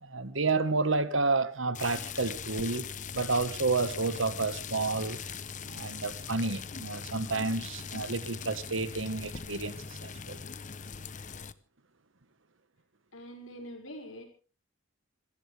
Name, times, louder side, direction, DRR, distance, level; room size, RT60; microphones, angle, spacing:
voice 1, 0.0-2.9 3.1-5.2 5.7-10.4, right 3 dB, 70° right, 1.4 m, -30 dB
sound 1, 1.7-11.5, left 6 dB, 40° left, 0.8 m, -41 dB
voice 2, 13.1-14.3, equal, 85° left, 5.9 m, -44 dB
26.5 x 15.0 x 3.4 m
head